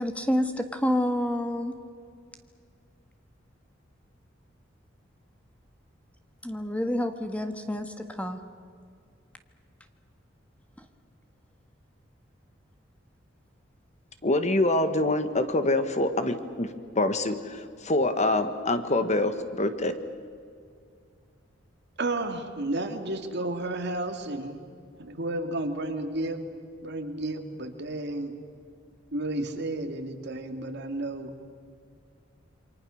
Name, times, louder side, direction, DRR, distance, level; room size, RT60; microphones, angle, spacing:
voice 1, 0.0-1.7 6.4-8.4 10.8-10.9, left 1 dB, 5° left, 7 dB, 1.5 m, -28 dB
voice 2, 14.2-16.7 16.9-20.0, left 2 dB, 35° left, 10 dB, 1.4 m, -25 dB
voice 3, 22.0-24.5 25.0-26.5 26.8-28.3 29.1-31.3, right 2 dB, 60° right, 5 dB, 2.3 m, -32 dB
28.5 x 24.5 x 6.5 m, 2.3 s
head